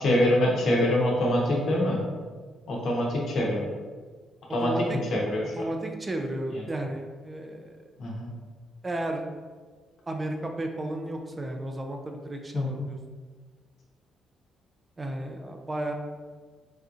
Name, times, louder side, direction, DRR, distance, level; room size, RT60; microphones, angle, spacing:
voice 1, 0.0-2.0 2.7-3.6 4.5-5.7 6.5-6.6 8.0-8.3 12.5-12.8, left 1 dB, 65° left, -3 dB, 0.9 m, -25 dB
voice 2, 4.6-5.0 5.6-7.7 8.8-9.3 10.1-13.0 15.0-15.9, right 1 dB, 25° right, 3 dB, 0.3 m, -33 dB
3.5 x 2.7 x 2.4 m, 1.5 s
cardioid pair, 90°, 0 cm